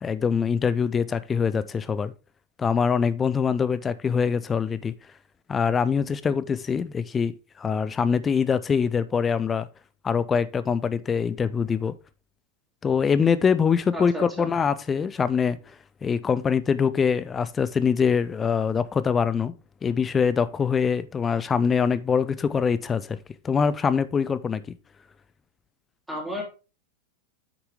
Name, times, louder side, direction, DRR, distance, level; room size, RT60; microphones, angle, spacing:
voice 1, 0.0-2.1 2.6-4.9 5.5-9.7 10.0-11.9 12.8-15.6 16.0-19.5 19.8-23.2 23.4-24.6, left 6 dB, 20° left, 0.6 m, -24 dB
voice 2, 13.9-14.5 26.1-26.4, equal, 5° right, 2.9 m, -33 dB
9.3 x 5.8 x 3.6 m
figure-of-eight pair, 90°, 0 cm